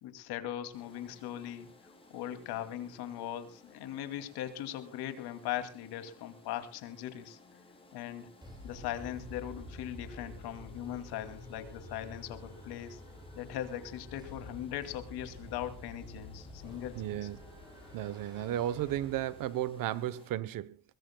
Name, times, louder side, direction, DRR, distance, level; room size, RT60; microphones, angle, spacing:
voice 1, 0.0-1.7 2.1-7.4 7.9-8.3 8.6-13.0 13.3-17.3, left 11 dB, 80° left, 2.6 m, -40 dB
sound 1, 0.7-20.3, left 2 dB, 15° left, 5.7 m, -59 dB
sound 2, 8.4-19.8, left 1 dB, 10° right, 7.9 m, -49 dB
voice 2, 17.0-17.4 17.9-20.8, right 12 dB, 60° right, 0.9 m, -34 dB
22.5 x 21.0 x 2.2 m
cardioid pair, 160°, 37 cm